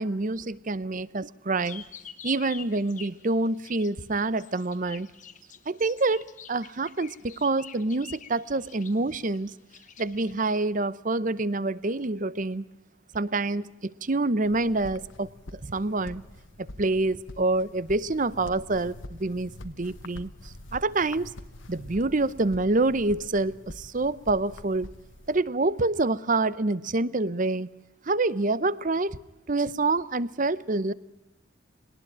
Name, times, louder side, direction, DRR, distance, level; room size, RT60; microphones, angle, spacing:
voice 1, 0.0-1.8 2.2-5.1 5.7-9.5 10.0-12.7 13.1-16.2 16.6-21.3 21.7-24.9 25.3-27.7 28.0-29.2 29.5-30.9, right 2 dB, 40° right, 18 dB, 0.7 m, -27 dB
sound 1, 1.6-4.0 4.3-10.3, left 8 dB, 35° left, 1.3 m, -47 dB
sound 2, 14.5-25.4, left 1 dB, 65° left, 1.4 m, -45 dB
21.0 x 19.0 x 8.8 m, 0.96 s
head